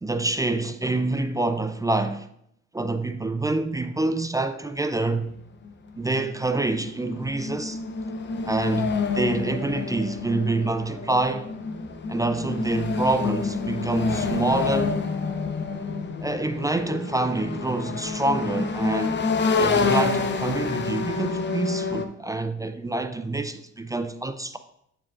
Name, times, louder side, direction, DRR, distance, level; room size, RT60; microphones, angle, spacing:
voice 1, 0.0-2.3 2.7-5.3 6.0-7.8 8.4-11.5 12.1-15.0 16.2-19.2 19.6-24.6, right 2 dB, 10° right, 0.3 m, -26 dB
sound 1, 5.7-5.8 6.0-22.1, left 4 dB, 40° left, 0.6 m, -28 dB
7.2 x 6.9 x 2.4 m
cardioid pair, 90°, 30 cm